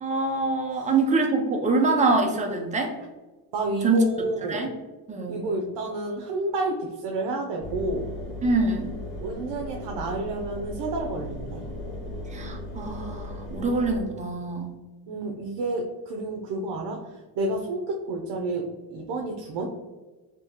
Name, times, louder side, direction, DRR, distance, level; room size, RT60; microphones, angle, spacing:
voice 1, 0.0-2.9 3.8-4.0 4.5-4.7 5.1-5.4 8.4-8.9 12.3-14.8, right 3 dB, 20° right, 2 dB, 0.3 m, -24 dB
voice 2, 3.5-4.6 5.3-8.1 9.2-11.6 15.1-19.7, right 2 dB, 75° right, 1 dB, 0.6 m, -30 dB
Engine, 7.6-14.0, left 1 dB, ahead, 1.5 m, -36 dB
3.7 x 2.7 x 2.7 m, 1.2 s
cardioid pair, 170°, 42 cm